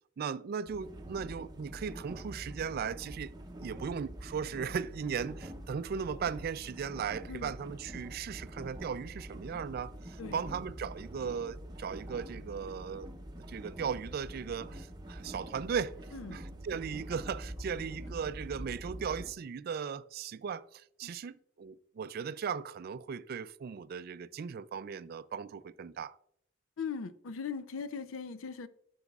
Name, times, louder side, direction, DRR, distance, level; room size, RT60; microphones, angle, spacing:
voice 1, 0.2-3.3 3.6-13.1 13.5-15.9 16.3-26.2, right 6 dB, 50° right, 0.3 m, -37 dB
sound 1, 0.7-19.3, right 1 dB, 20° right, 0.7 m, -45 dB
voice 2, 26.8-28.7, left 5 dB, 85° left, 0.5 m, -39 dB
12.0 x 6.1 x 2.4 m
head